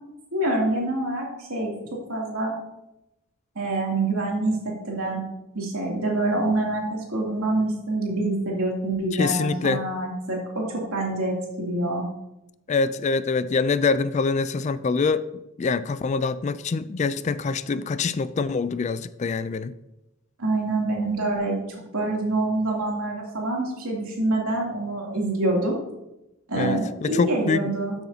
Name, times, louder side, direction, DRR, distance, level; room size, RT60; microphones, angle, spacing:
voice 1, 0.3-1.7 2.1-2.5 3.5-4.6 4.9-5.2 5.5-12.0 20.4-21.6 21.9-25.7 26.5-28.0, right 2 dB, 85° right, -2 dB, 2.8 m, -26 dB
voice 2, 9.1-9.8 12.7-15.2 15.6-19.7 26.5-27.7, left 4 dB, 35° left, 15 dB, 0.3 m, -25 dB
13.0 x 7.1 x 2.8 m, 0.92 s
head